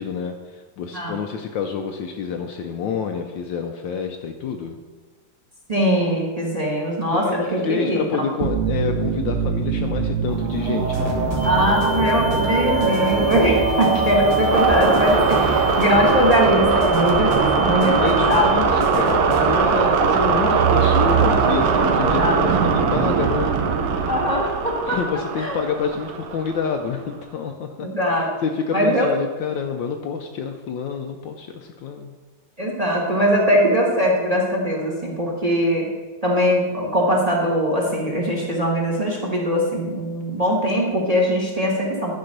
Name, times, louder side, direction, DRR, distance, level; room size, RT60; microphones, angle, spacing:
voice 1, 0.0-4.8 7.1-7.4 7.6-11.7 18.0-23.5 24.9-32.1, left 6 dB, 70° left, 5 dB, 1.2 m, -28 dB
voice 2, 5.7-8.2 11.4-18.5 22.0-22.4 24.1-25.0 25.4-25.6 27.8-28.3 28.7-29.1 32.6-35.9 36.2-42.1, equal, 20° right, -1 dB, 1.2 m, -21 dB
sound 1, 8.4-26.9, right 5 dB, 90° right, 1.8 m, -21 dB
sound 2, 10.9-19.6, left 1 dB, 20° left, 0.8 m, -30 dB
sound 3, 11.4-18.5, left 3 dB, 50° right, 1.7 m, -35 dB
10.5 x 4.5 x 6.6 m, 1.3 s
omnidirectional pair, 2.4 m